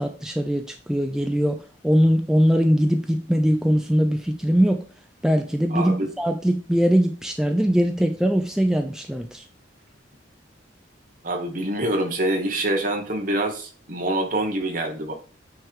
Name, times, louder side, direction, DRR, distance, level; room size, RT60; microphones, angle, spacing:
voice 1, 0.0-4.8 5.2-9.4, equal, 5° right, 0.5 m, -21 dB
voice 2, 5.7-6.1 11.2-15.2, right 1 dB, 45° right, 1.5 m, -25 dB
9.2 x 3.4 x 4.6 m
head